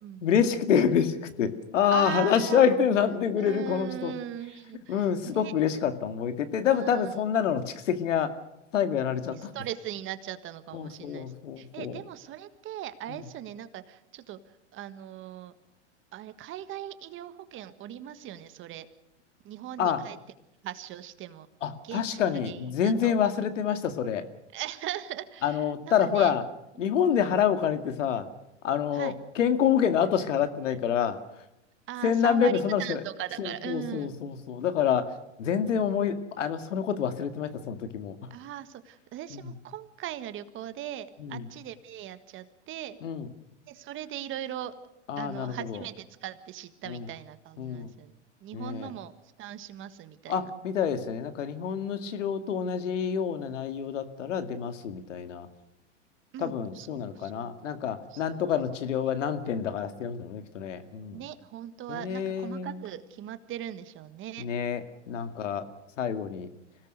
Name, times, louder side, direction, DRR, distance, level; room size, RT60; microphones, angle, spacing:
voice 1, 0.2-4.1 4.9-8.4 8.7-9.5 10.7-12.0 13.1-13.2 19.8-20.0 21.6-24.2 25.4-26.4 26.8-28.3 28.6-31.2 32.0-33.0 33.4-35.1 35.4-38.2 39.3-39.5 41.2-41.4 43.0-43.3 45.1-45.8 46.9-47.1 47.6-47.9 48.5-48.9 50.3-55.5 56.4-61.2 61.9-62.8 64.4-65.7 66.0-66.5, left 8 dB, 80° left, 9 dB, 2.3 m, -27 dB
voice 2, 1.9-2.8 3.4-5.5 6.6-7.1 9.2-14.4 14.7-15.5 16.1-18.9 19.4-20.2 20.6-21.5 21.8-23.1 24.5-26.3 26.8-27.3 28.9-29.2 31.9-34.1 38.3-43.0 43.7-44.8 45.2-50.4 56.3-57.5 58.1-58.4 59.0-59.1 61.1-64.4, right 11 dB, 35° right, 12 dB, 1.5 m, -39 dB
25.5 x 18.0 x 6.6 m, 0.86 s
hypercardioid pair, 120°, 37 cm